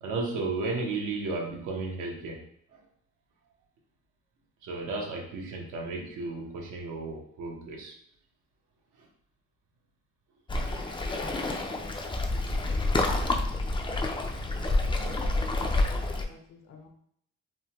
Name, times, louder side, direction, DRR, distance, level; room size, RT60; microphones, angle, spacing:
voice 1, 0.0-2.4 2.7-2.8 4.6-8.0 9.0-9.1, right 3 dB, 85° right, 0 dB, 0.8 m, -34 dB
Waves surf, 10.5-16.2, left 2 dB, 15° left, 0.4 m, -28 dB
voice 2, 14.5-16.9, left 3 dB, 55° left, 3 dB, 0.7 m, -50 dB
3.4 x 2.1 x 2.8 m, 0.69 s
cardioid pair, 90°, 30 cm